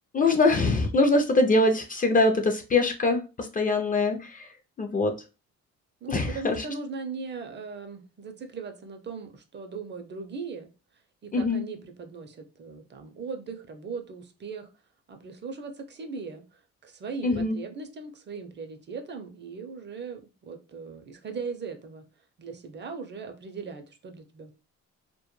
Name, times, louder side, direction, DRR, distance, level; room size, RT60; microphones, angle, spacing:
voice 1, 0.1-4.5 4.8-5.1 6.1-6.7 11.3-11.6 17.2-17.6, left 2 dB, 30° left, 5 dB, 0.4 m, -23 dB
voice 2, 6.0-10.7 11.2-14.7 15.1-22.0 22.4-24.5, right 4 dB, 35° right, 6 dB, 0.5 m, -39 dB
2.2 x 2.1 x 3.0 m, 0.32 s
cardioid pair, 90°, 30 cm